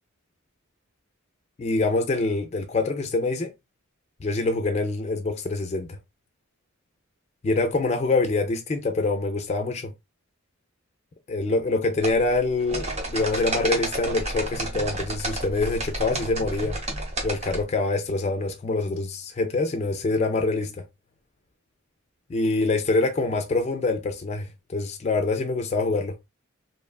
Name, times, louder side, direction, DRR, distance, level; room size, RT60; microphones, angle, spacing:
voice 1, 1.6-3.5 4.2-6.0 7.4-9.9 11.3-16.8 17.2-20.8 22.3-26.2, left 3 dB, 30° left, 0.3 m, -25 dB
sound 1, 12.0-17.6, right 2 dB, 30° right, 0.7 m, -31 dB
2.8 x 2.2 x 2.3 m
head